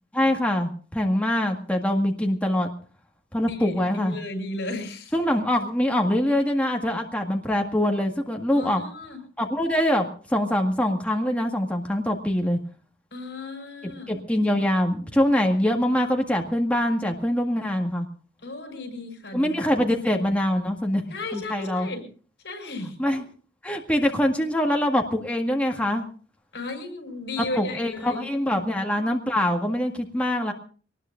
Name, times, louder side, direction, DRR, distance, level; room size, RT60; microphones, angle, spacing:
voice 1, 0.1-2.7 3.3-4.2 5.1-8.8 9.4-12.6 13.8-18.0 19.3-21.0 21.3-21.9 23.0-23.2 23.6-26.0 27.4-30.5, left 1 dB, 10° left, 1 dB, 1.8 m, -24 dB
voice 2, 3.4-5.1 8.5-9.2 13.1-14.2 18.4-19.5 21.1-22.1 22.4-23.0 26.5-28.7, left 2 dB, 70° left, 5 dB, 5.5 m, -35 dB
23.5 x 19.5 x 2.6 m, 0.40 s
head